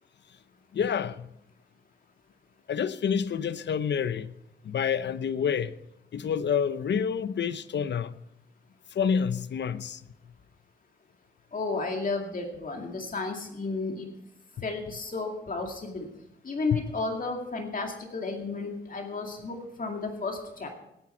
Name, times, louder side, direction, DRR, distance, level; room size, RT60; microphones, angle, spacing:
voice 1, 0.7-1.3 2.7-4.3 4.6-5.8 6.1-8.2 8.9-10.0 14.6-14.7 16.7-16.8, left 7 dB, 60° left, 0.7 m, -28 dB
voice 2, 11.5-14.1 14.6-16.0 16.5-20.8, left 3 dB, 40° left, 2.3 m, -33 dB
18.0 x 9.7 x 4.5 m
cardioid pair, 100°, 21 cm